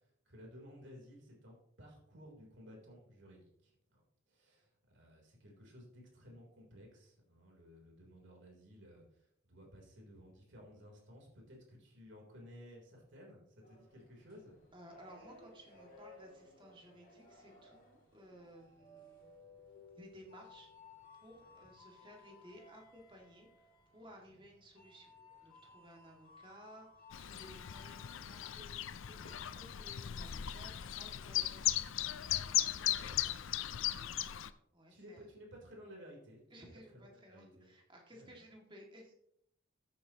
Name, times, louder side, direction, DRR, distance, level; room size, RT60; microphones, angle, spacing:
voice 1, 0.2-4.0 4.3-9.0 9.4-14.6 21.4-21.7 32.8-33.1 34.9-37.7 38.1-38.4, equal, 60° right, -1 dB, 3.6 m, -56 dB
sound 1, 13.6-29.7, left 3 dB, 45° left, 2.6 m, -60 dB
voice 2, 14.7-19.5 20.0-20.7 21.2-25.1 25.4-31.9 32.7-34.3 34.7-35.3 36.5-39.1, equal, 25° right, 0 dB, 2.3 m, -58 dB
Chirp tweet, 27.1-34.5, left 12 dB, 70° left, 0.5 m, -37 dB
13.5 x 8.6 x 3.0 m, 0.73 s
head